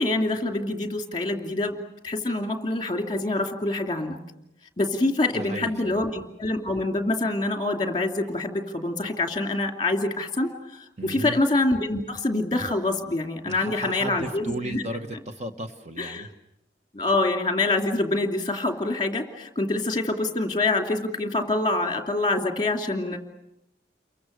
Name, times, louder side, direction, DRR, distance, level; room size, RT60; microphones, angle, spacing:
voice 1, 0.0-1.8 2.0-4.2 4.8-14.8 16.0-16.3 16.9-23.2, left 2 dB, 25° left, 4 dB, 2.7 m, -26 dB
voice 2, 5.3-6.0 11.0-11.4 13.4-16.3, right 1 dB, 40° right, 6 dB, 1.3 m, -35 dB
29.5 x 23.5 x 6.6 m, 0.84 s
head